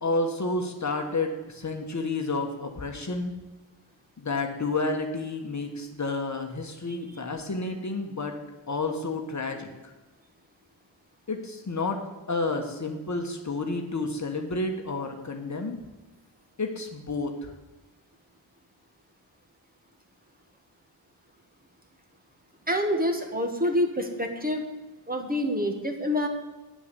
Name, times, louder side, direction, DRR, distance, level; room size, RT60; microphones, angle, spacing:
voice 1, 0.0-3.3 4.2-8.3 8.7-9.9 11.3-12.0 12.3-15.8 16.6-17.5, left 3 dB, 35° left, 4 dB, 1.2 m, -30 dB
voice 2, 22.7-24.6 25.1-26.3, left 1 dB, 20° right, 4 dB, 1.3 m, -27 dB
8.6 x 6.9 x 6.8 m, 1.2 s
cardioid pair, 85°, 49 cm